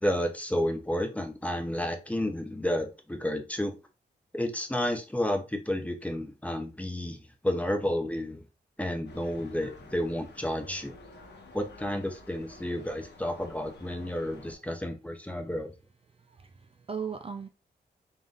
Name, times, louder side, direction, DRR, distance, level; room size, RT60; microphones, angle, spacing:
voice 1, 0.0-3.7 4.3-8.4 8.8-10.9 11.5-15.7, left 1 dB, 10° left, 0.6 m, -31 dB
sound 1, 9.1-14.6, left 2 dB, 75° left, 1.0 m, -51 dB
voice 2, 16.1-17.5, right 6 dB, 35° right, 0.4 m, -38 dB
3.9 x 3.6 x 2.4 m
wide cardioid pair, 130°, 18 cm